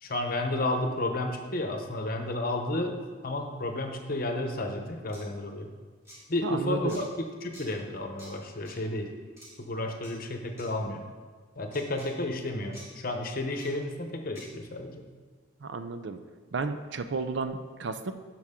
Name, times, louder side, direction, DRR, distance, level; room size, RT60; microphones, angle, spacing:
voice 1, 0.0-5.7 6.3-9.1 9.6-11.0 11.6-15.0, left 1 dB, 45° left, 4 dB, 0.8 m, -32 dB
sound 1, 5.1-5.2 6.0-6.2 6.9-7.0 7.5-7.7 8.2-8.3 8.7-8.8 9.4-9.5 10.0-10.1 10.6-10.7 11.7-12.1 12.7-12.9 13.6-13.7 14.4-14.5, equal, 15° right, 2.6 m, -48 dB
voice 2, 6.4-7.0 15.6-16.2 16.5-18.1, right 4 dB, 60° right, 9 dB, 0.5 m, -32 dB
11.0 x 6.0 x 3.7 m, 1.5 s
head